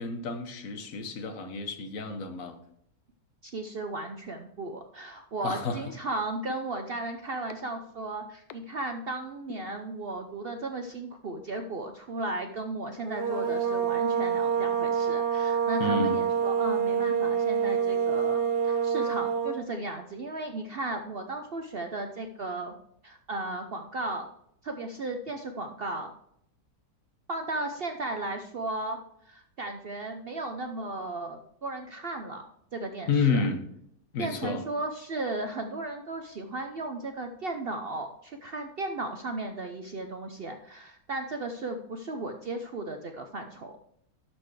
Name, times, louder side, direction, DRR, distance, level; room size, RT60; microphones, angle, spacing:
voice 1, 0.0-2.6 5.4-5.8 15.8-16.2 33.1-33.6 34.1-34.6, left 4 dB, 60° left, 8 dB, 1.3 m, -29 dB
voice 2, 3.4-22.7 23.0-24.3 24.6-26.1 27.3-29.0 29.3-32.4 32.7-33.5 34.2-43.7, right 2 dB, 55° right, 6 dB, 0.7 m, -35 dB
sound 1, 5.5-5.6 6.5-6.6 7.5-7.6 8.5-8.6 9.5-9.6, left 9 dB, 85° left, 1.2 m, -43 dB
sound 2, 13.0-19.7, right 7 dB, 40° right, 1.1 m, -27 dB
12.0 x 4.4 x 4.7 m, 0.72 s
omnidirectional pair, 1.6 m